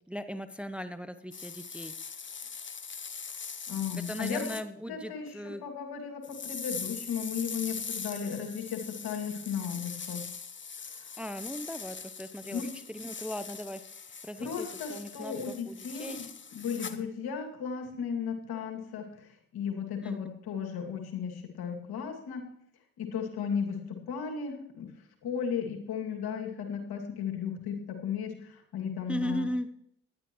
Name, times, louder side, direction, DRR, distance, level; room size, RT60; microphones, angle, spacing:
voice 1, 0.1-1.9 3.9-5.6 11.2-13.8 14.2-16.3 20.0-20.2 29.1-29.7, equal, 5° right, 11 dB, 0.8 m, -38 dB
sound 1, 1.3-4.6 6.2-17.0, left 6 dB, 30° left, 1.1 m, -41 dB
voice 2, 3.7-4.6 4.9-10.2 12.5-12.7 14.4-16.3 16.5-19.3 19.5-22.5 23.0-24.9 25.2-29.5, left 7 dB, 65° left, 2 dB, 2.5 m, -35 dB
19.0 x 11.5 x 3.1 m, 0.72 s
hypercardioid pair, 45°, 40 cm